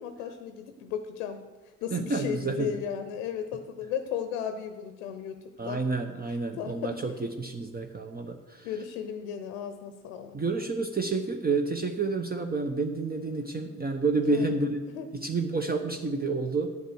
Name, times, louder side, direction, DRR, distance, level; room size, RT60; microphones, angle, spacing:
voice 1, 0.0-1.4 1.6-5.4 5.6-5.8 6.3-7.0 8.6-10.4 14.3-14.5 14.9-15.1, left 8 dB, 75° left, 10 dB, 0.8 m, -35 dB
voice 2, 1.9-2.7 5.6-8.7 10.3-14.8 15.1-16.7, right 3 dB, 25° right, 5 dB, 1.0 m, -29 dB
9.5 x 8.0 x 6.3 m, 1.2 s
figure-of-eight pair, 45°, 40 cm